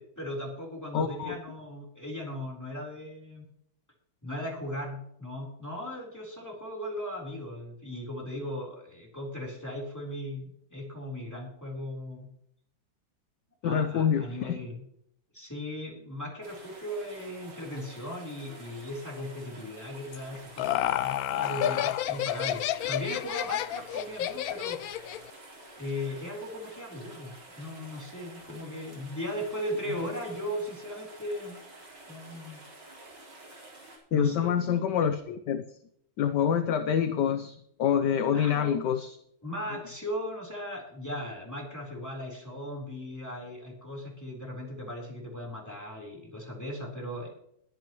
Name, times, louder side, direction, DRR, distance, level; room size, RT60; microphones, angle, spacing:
voice 1, 0.0-3.4 4.2-12.3 13.6-14.8 15.3-25.2 25.8-31.6 32.1-32.6 34.1-34.5 38.3-38.8 39.4-47.3, left 1 dB, 10° left, -2 dB, 3.7 m, -37 dB
voice 2, 0.9-1.4 13.6-14.6 34.1-35.6 36.2-39.1, left 8 dB, 65° left, 8 dB, 1.3 m, -26 dB
sound 1, 16.4-34.0, right 2 dB, 80° right, 5.1 m, -50 dB
Laughter, 20.1-25.3, left 12 dB, 80° left, 0.8 m, -30 dB
21.5 x 9.5 x 3.1 m, 0.73 s
omnidirectional pair, 2.1 m